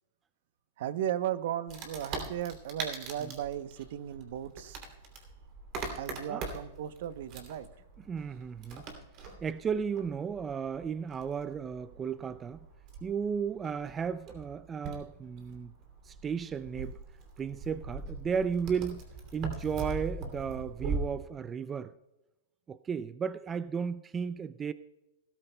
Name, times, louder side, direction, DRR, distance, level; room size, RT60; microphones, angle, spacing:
voice 1, 0.8-4.8 5.9-7.7, right 10 dB, 65° right, 0.8 m, -36 dB
Wood, 1.7-21.0, right 4 dB, 40° right, 2.9 m, -42 dB
voice 2, 8.1-8.9 9.4-12.6 13.0-15.7 16.0-17.0 17.4-19.0 19.3-21.9 22.7-24.7, right 6 dB, 15° right, 0.3 m, -34 dB
19.5 x 13.0 x 2.2 m
hypercardioid pair, 145°, 0 cm